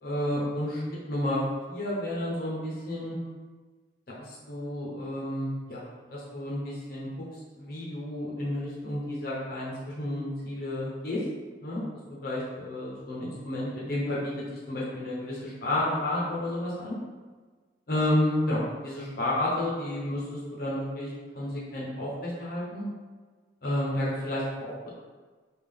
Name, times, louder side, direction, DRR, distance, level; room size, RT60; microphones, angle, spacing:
voice 1, 0.0-1.4 1.7-3.2 4.1-5.9 6.1-7.1 7.6-11.2 11.6-11.9 12.2-14.3 14.7-17.0 17.9-22.8 23.6-24.9, left 1 dB, 50° left, -7 dB, 0.8 m, -31 dB
3.5 x 2.4 x 3.5 m, 1.4 s
head